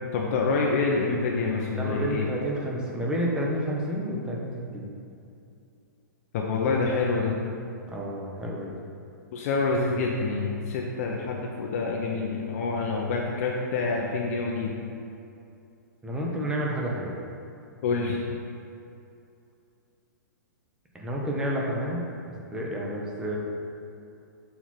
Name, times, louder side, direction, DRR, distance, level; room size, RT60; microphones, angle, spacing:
voice 1, 0.1-2.3 6.3-7.3 9.3-14.7 17.8-18.2, left 4 dB, 50° left, -1 dB, 0.8 m, -27 dB
voice 2, 1.8-4.9 7.9-8.7 16.0-17.1 20.9-22.0 22.5-23.4, equal, 10° right, -3 dB, 1.0 m, -30 dB
6.7 x 4.5 x 4.4 m, 2.6 s
hypercardioid pair, 140°, 10 cm